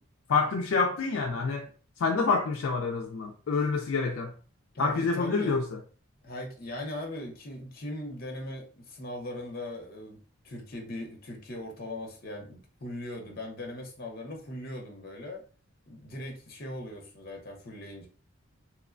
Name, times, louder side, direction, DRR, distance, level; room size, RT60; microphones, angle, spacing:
voice 1, 0.3-1.7 2.0-4.3 4.8-5.6, left 4 dB, 70° left, 0.3 m, -27 dB
voice 2, 4.7-5.6 6.2-10.2 10.4-15.4 15.9-18.1, left 1 dB, 45° left, 0.7 m, -39 dB
3.0 x 2.1 x 2.4 m
head